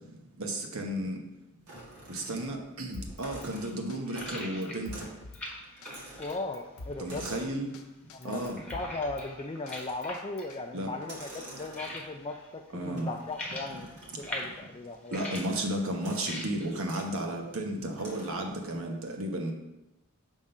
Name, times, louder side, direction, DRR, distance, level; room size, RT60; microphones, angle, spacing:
voice 1, 0.4-1.2 2.1-4.9 7.0-7.7 8.2-8.6 10.7-10.9 12.7-13.1 14.4-14.5 15.1-19.5, right 1 dB, 65° right, 2 dB, 1.0 m, -33 dB
sound 1, 1.7-2.7 3.1-4.5 4.9-5.2 5.5-7.6 8.2-8.7 9.6-10.2 11.0-12.3 13.0-14.7 15.3-15.6 16.0-16.3 16.8-17.1 18.0-18.6, right 1 dB, 90° right, 2.0 m, -48 dB
Drum kit, 2.9-3.5 3.9-4.0 4.3-5.4 5.8-6.0 6.3-7.3 7.7-7.8 8.1-9.3 9.7-10.6, left 2 dB, 65° left, 0.7 m, -45 dB
sound 2, 3.0-18.7, left 1 dB, 5° left, 1.1 m, -45 dB
voice 2, 6.2-7.4 8.1-8.4 8.7-13.9 14.2-15.2, left 2 dB, 25° left, 3 dB, 0.3 m, -37 dB
7.2 x 3.7 x 5.4 m, 0.97 s
head